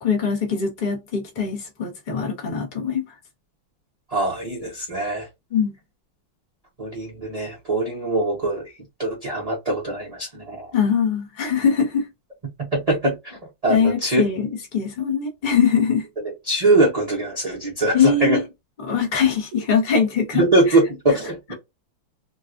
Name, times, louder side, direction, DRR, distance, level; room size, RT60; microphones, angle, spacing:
voice 1, 0.0-3.0 5.5-5.7 10.7-12.1 13.7-16.0 17.9-18.4 18.8-20.4, left 6 dB, 25° left, 1.2 m, -22 dB
voice 2, 4.1-5.3 6.8-8.7 9.0-10.7 12.6-14.2 16.2-18.4 20.3-21.5, right 2 dB, 30° right, 0.7 m, -22 dB
3.8 x 2.3 x 2.6 m
omnidirectional pair, 2.4 m